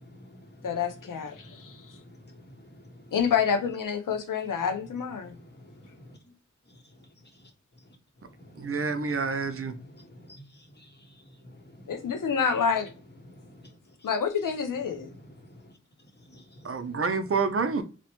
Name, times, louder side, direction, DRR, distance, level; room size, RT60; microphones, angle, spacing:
voice 1, 0.0-0.9 1.4-1.6 1.9-2.4 2.7-2.8 5.5-5.6 5.9-6.1 8.5-8.9 9.9-10.4 10.8-10.9 11.8-12.0 13.4-13.7 15.0-15.3 16.3-16.9, left 1 dB, 35° left, 0.8 m, -50 dB
voice 2, 0.6-1.8 3.1-5.4 11.9-12.9 14.0-15.1, left 6 dB, 90° left, 0.6 m, -28 dB
voice 3, 8.6-9.7 16.6-17.8, right 4 dB, 45° right, 0.5 m, -28 dB
2.8 x 2.1 x 2.9 m
cardioid pair, 45°, 31 cm